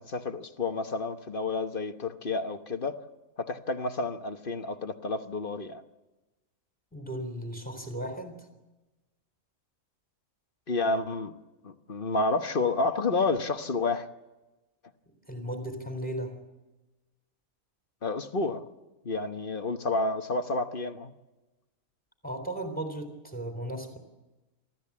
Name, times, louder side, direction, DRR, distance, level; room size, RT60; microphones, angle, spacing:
voice 1, 0.0-3.0 3.4-5.8 10.7-11.3 11.6-14.1 18.0-18.6 19.0-21.1, left 3 dB, 40° left, 8 dB, 1.2 m, -30 dB
voice 2, 6.9-8.5 15.3-16.4 22.2-24.0, right 1 dB, 5° left, 6 dB, 3.6 m, -36 dB
29.0 x 14.0 x 8.5 m, 1.1 s
omnidirectional pair, 1.6 m